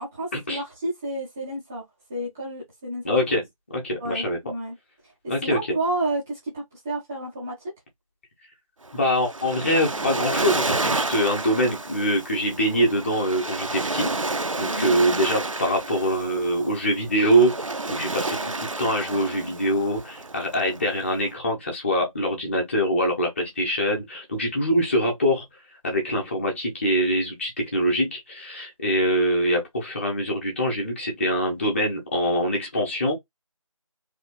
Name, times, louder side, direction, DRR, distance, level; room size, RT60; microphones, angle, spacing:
voice 1, 0.0-1.8 2.1-3.1 4.0-4.7 5.4-7.5 14.6-15.2 18.2-18.7 19.3-19.5, right 1 dB, 5° right, 0.8 m, -31 dB
voice 2, 3.0-3.4 3.7-4.4 5.3-5.8 8.9-14.2 14.6-25.5 25.8-33.1, equal, 20° left, 1.5 m, -24 dB
Waves surf, 8.9-21.3, right 2 dB, 65° right, 0.8 m, -30 dB
4.1 x 3.3 x 3.3 m
figure-of-eight pair, 165°, 18 cm